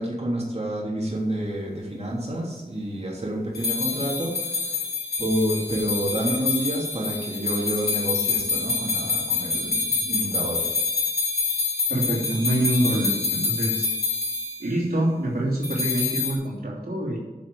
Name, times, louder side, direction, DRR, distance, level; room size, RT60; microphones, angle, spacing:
voice 1, 0.0-4.8 5.2-10.7, right 1 dB, 40° right, -4 dB, 3.2 m, -28 dB
sound 1, 3.5-14.6 15.6-16.3, left 4 dB, 85° left, 3.1 m, -27 dB
voice 2, 11.9-13.9 14.6-17.2, right 1 dB, 75° right, -5 dB, 3.1 m, -25 dB
10.5 x 6.2 x 7.8 m, 1.1 s
wide cardioid pair, 60°, 16 cm